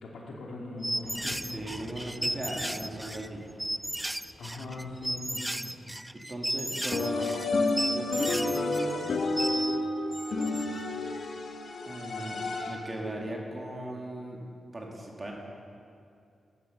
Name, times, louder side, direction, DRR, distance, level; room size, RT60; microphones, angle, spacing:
voice 1, 0.0-1.5 4.4-5.8, left 2 dB, 85° left, -2 dB, 2.6 m, -40 dB
sound 1, 0.8-9.8 10.1-10.9, right 1 dB, 10° right, 0.3 m, -34 dB
sound 2, 0.9-5.9, left 1 dB, 20° left, 4.1 m, -52 dB
voice 2, 1.5-3.4 6.1-7.3 7.9-9.1 11.9-14.4 14.7-15.3, right 1 dB, 30° right, -1 dB, 2.2 m, -38 dB
sound 3, 6.9-13.0, left 2 dB, 65° left, 1.3 m, -30 dB
12.5 x 10.0 x 6.7 m, 2.4 s
cardioid pair, 90°, 0 cm